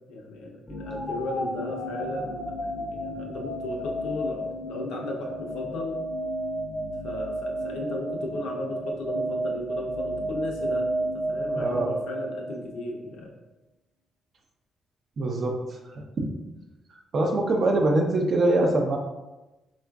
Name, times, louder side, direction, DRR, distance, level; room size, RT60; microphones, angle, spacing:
voice 1, 0.1-6.0 7.0-13.3, left 2 dB, 90° left, -1 dB, 0.6 m, -35 dB
sound 1, 0.7-12.8, right 1 dB, 20° left, 0.5 m, -32 dB
voice 2, 11.6-11.9 15.2-15.6 15.9-16.3 17.1-19.0, right 2 dB, 50° right, 2 dB, 0.5 m, -23 dB
3.7 x 2.4 x 2.3 m, 1.0 s
cardioid pair, 90°, 0 cm